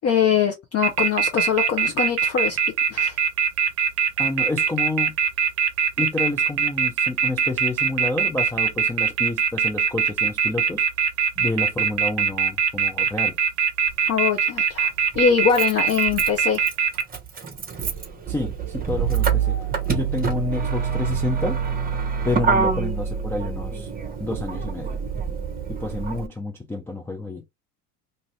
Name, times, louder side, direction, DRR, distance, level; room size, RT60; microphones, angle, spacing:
voice 1, 0.0-2.6 2.9-3.2 14.1-14.9 15.1-16.6, left 7 dB, 30° left, 0.7 m, -22 dB
sound 1, 0.8-17.0, right 7 dB, 50° right, 0.7 m, -21 dB
voice 2, 4.2-5.1 6.0-10.8 11.4-13.4 18.3-19.6 19.9-21.6 22.2-23.9 24.2-25.0 25.7-27.4, left 2 dB, 5° left, 0.3 m, -29 dB
Motor vehicle (road), 13.9-14.0 15.1-26.3, right 6 dB, 20° right, 0.9 m, -26 dB
2.6 x 2.6 x 3.1 m
hypercardioid pair, 80°, 48 cm